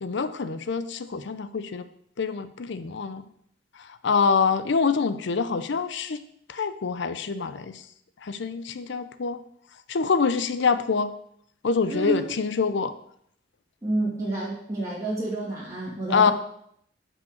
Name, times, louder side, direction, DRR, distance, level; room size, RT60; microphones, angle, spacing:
voice 1, 0.0-1.8 2.2-3.2 4.0-6.2 6.5-7.8 8.2-9.4 9.9-11.1 11.6-12.9 16.1-16.3, left 5 dB, 65° left, 12 dB, 0.6 m, -25 dB
voice 2, 11.9-12.3 13.8-16.3, right 2 dB, 15° right, -8 dB, 2.5 m, -29 dB
5.7 x 5.4 x 6.4 m, 0.70 s
head